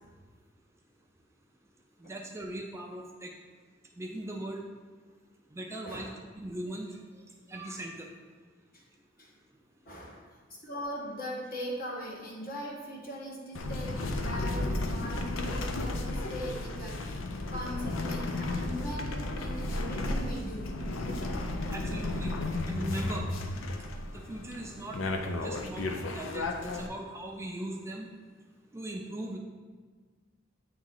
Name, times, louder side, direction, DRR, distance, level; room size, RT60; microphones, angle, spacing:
voice 1, 2.0-3.3 4.0-4.6 5.5-7.2 7.5-8.1 21.7-22.4 22.6-23.3 24.0-25.0 25.3-28.1 28.7-29.4, right 1 dB, 15° right, 1 dB, 0.4 m, -39 dB
voice 2, 9.8-10.2 10.5-20.8, equal, 50° left, -3 dB, 1.3 m, -40 dB
sound 1, 13.5-26.9, left 2 dB, 75° left, 0.5 m, -33 dB
7.9 x 3.1 x 3.8 m, 1.5 s
head